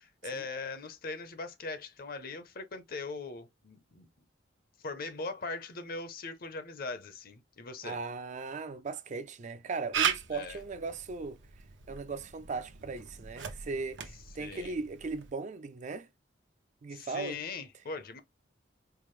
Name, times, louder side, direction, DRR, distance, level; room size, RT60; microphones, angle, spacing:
voice 1, 0.0-4.1 4.8-8.0 10.3-10.6 14.4-14.8 16.9-18.2, left 3 dB, 55° left, 0.7 m, -40 dB
voice 2, 7.8-11.4 11.9-16.1 16.8-17.4, right 4 dB, 40° right, 0.4 m, -38 dB
Camera, 9.9-15.3, right 7 dB, 85° right, 0.7 m, -37 dB
4.6 x 2.0 x 3.1 m
head